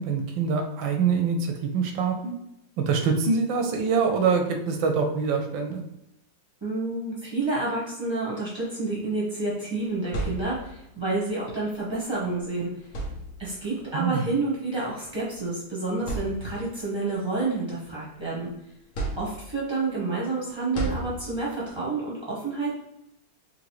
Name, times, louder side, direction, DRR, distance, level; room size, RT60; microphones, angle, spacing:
voice 1, 0.0-2.3 2.8-5.8 13.9-14.2, right 5 dB, 85° right, 4 dB, 1.4 m, -25 dB
voice 2, 6.6-12.7 13.4-18.5 19.2-22.7, right 3 dB, 15° right, -7 dB, 1.2 m, -29 dB
sound 1, 9.8-10.9 12.2-12.3 12.8-13.7 14.8-15.0 15.5-15.6 16.0-16.8 17.3-18.4 18.9-19.8 20.7-21.6, right 2 dB, 50° left, 1.2 m, -34 dB
3.8 x 3.4 x 3.1 m, 0.80 s
omnidirectional pair, 2.1 m